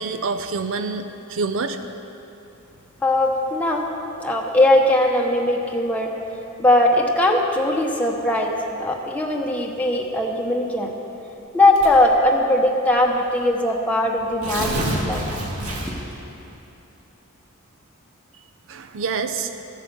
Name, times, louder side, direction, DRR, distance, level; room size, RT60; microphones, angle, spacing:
voice 1, 0.0-1.8 18.7-19.5, right 4 dB, 60° right, 8 dB, 0.5 m, -27 dB
voice 2, 3.0-3.8 4.2-6.1 6.6-10.9 11.5-15.2 15.8-16.0, left 1 dB, 5° left, 0 dB, 0.9 m, -20 dB
Tearing, 11.7-12.1 13.0-13.1 13.4-13.5 14.2-16.1, right 1 dB, 80° right, 2.1 m, -27 dB
14.0 x 8.4 x 6.9 m, 2.9 s
head